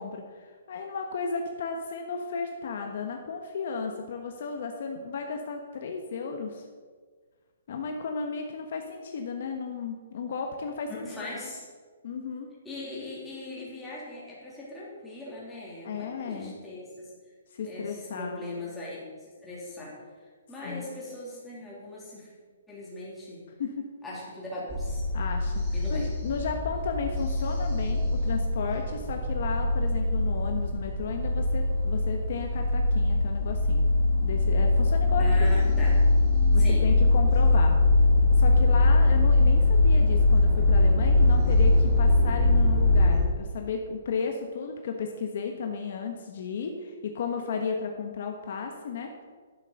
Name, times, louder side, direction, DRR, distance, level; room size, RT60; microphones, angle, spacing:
voice 1, 0.0-6.6 7.7-11.3 12.0-12.5 15.8-16.6 17.5-18.4 20.6-20.9 23.6-23.9 25.1-25.6 25.9-33.9 34.2-35.5 36.5-37.8 38.4-49.1, left 5 dB, 55° left, 3 dB, 1.2 m, -34 dB
voice 2, 10.9-11.6 12.6-17.1 17.6-19.9 20.5-22.3 22.7-23.4 24.0-25.0 25.7-26.1 35.2-36.0 36.6-36.9, left 2 dB, 5° left, -7 dB, 3.2 m, -39 dB
sound 1, 24.7-43.2, left 2 dB, 25° right, 3.8 m, -22 dB
11.5 x 6.9 x 6.5 m, 1.6 s
hypercardioid pair, 165°, 0 cm